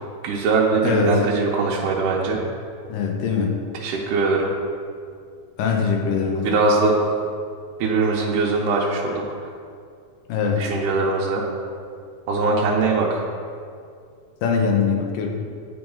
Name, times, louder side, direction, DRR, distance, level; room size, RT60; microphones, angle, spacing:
voice 1, 0.2-2.4 3.8-4.5 6.4-7.0 7.8-9.2 10.6-11.4 12.3-13.2, right 3 dB, 80° right, -3 dB, 2.2 m, -21 dB
voice 2, 0.8-1.3 2.9-3.6 5.6-6.6 10.3-10.7 14.4-15.3, left 5 dB, 90° left, 2 dB, 2.5 m, -22 dB
9.5 x 3.9 x 5.2 m, 2.3 s
omnidirectional pair, 3.7 m